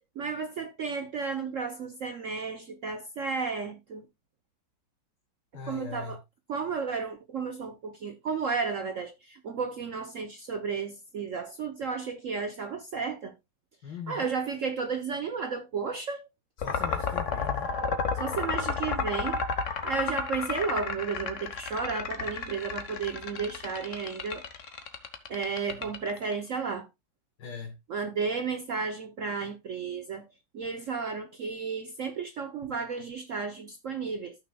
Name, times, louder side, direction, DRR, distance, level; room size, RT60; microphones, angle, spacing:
voice 1, 0.2-4.1 5.7-6.2 6.5-13.3 14.1-16.3 18.1-19.4 19.8-24.5 25.3-26.9 27.9-30.2 30.5-34.4, right 5 dB, 60° right, 0.8 m, -33 dB
voice 2, 5.5-6.2 13.8-14.3 16.6-17.7 27.4-27.8, left 6 dB, 60° left, 1.8 m, -40 dB
sound 1, 16.6-26.3, left 5 dB, 45° left, 1.2 m, -31 dB
14.5 x 6.1 x 2.2 m
omnidirectional pair, 2.2 m